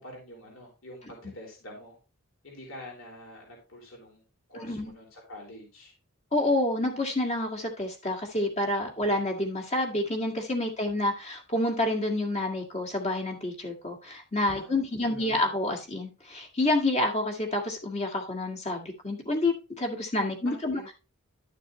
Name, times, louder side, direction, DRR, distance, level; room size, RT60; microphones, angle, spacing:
voice 1, 0.0-2.0 2.4-4.2 4.5-5.9 8.8-9.2 14.5-15.5 20.4-20.8, left 1 dB, 65° left, -1 dB, 4.0 m, -46 dB
voice 2, 4.6-4.9 6.3-20.8, left 1 dB, 30° left, 3 dB, 1.9 m, -28 dB
12.0 x 6.6 x 3.0 m, 0.30 s
head